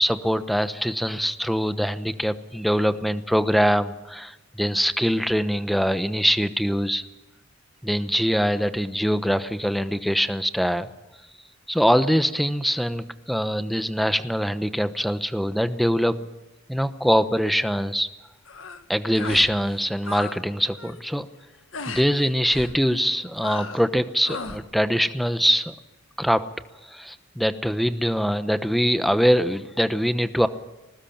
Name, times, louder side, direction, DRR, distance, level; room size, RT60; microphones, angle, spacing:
voice 1, 0.0-7.0 7.8-10.9 11.7-16.2 16.7-18.1 18.9-21.3 21.9-25.7 26.2-26.5 26.9-30.5, equal, ahead, 11 dB, 0.9 m, -23 dB
sound 1, 18.5-18.8 19.1-19.5 19.8-20.4 20.7-21.0 21.7-22.1 22.5-22.8 23.4-23.9 24.2-24.6, left 3 dB, 75° left, 1.7 m, -35 dB
21.0 x 19.0 x 8.8 m, 1.0 s
head